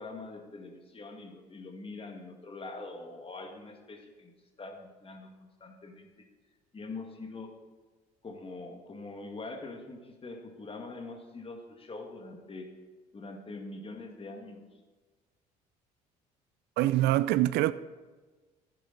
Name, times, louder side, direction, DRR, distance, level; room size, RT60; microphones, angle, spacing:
voice 1, 0.0-4.3 4.6-6.1 6.7-7.5 8.2-12.7 13.1-14.6, left 3 dB, 30° left, 2.1 m, -43 dB
voice 2, 16.8-17.7, right 15 dB, 65° right, 0.4 m, -24 dB
12.0 x 10.0 x 4.0 m
hypercardioid pair, 60°, 19 cm